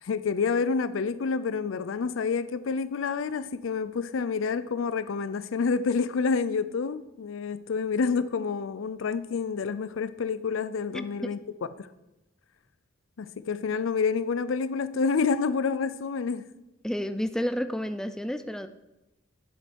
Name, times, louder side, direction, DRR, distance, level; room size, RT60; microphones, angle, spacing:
voice 1, 0.0-11.4 11.8-11.9 13.2-16.5, left 5 dB, 85° left, 14 dB, 0.5 m, -28 dB
voice 2, 10.9-11.3 16.8-18.7, equal, 5° left, 10 dB, 0.3 m, -31 dB
8.0 x 7.4 x 4.6 m, 0.99 s
head